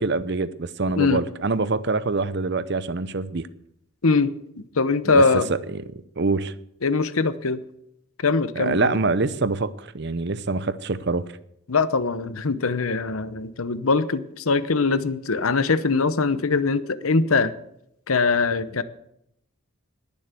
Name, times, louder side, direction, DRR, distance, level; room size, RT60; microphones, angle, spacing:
voice 1, 0.0-3.5 5.0-5.2 5.5-5.8 6.2-6.5 8.6-11.3, right 3 dB, 55° right, 0.7 m, -25 dB
voice 2, 4.0-5.5 6.8-7.6 8.2-8.9 11.7-17.5 18.1-18.8, left 4 dB, 85° left, 0.9 m, -22 dB
20.0 x 7.3 x 8.2 m
head